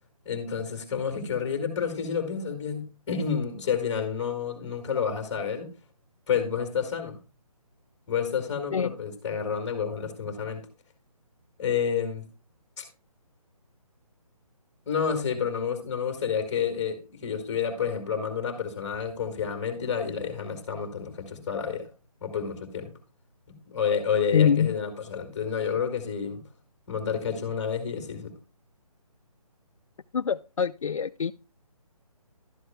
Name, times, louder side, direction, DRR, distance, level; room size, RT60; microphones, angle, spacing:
voice 1, 0.2-5.7 6.3-7.2 8.1-10.6 11.6-12.2 12.8-12.9 14.9-21.8 22.2-22.9 23.5-26.4 26.9-28.3, left 7 dB, 10° left, 6 dB, 1.6 m, -29 dB
voice 2, 24.3-24.8 30.1-31.3, left 7 dB, 60° left, 10 dB, 0.4 m, -24 dB
12.0 x 7.9 x 2.2 m, 0.30 s
hypercardioid pair, 175°, 20 cm